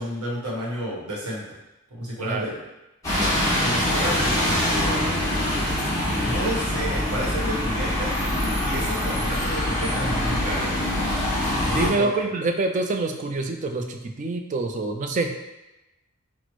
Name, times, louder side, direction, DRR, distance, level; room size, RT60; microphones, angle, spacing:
voice 1, 0.0-1.4 1.9-2.6 3.5-5.1 5.9-8.1 8.6-10.8 11.6-12.3, equal, 85° right, -4 dB, 1.1 m, -31 dB
Bus, 3.0-11.9, left 1 dB, 15° left, 1.4 m, -24 dB
voice 2, 11.7-15.5, right 3 dB, 35° right, 4 dB, 0.3 m, -26 dB
5.9 x 2.0 x 3.0 m, 1.0 s
head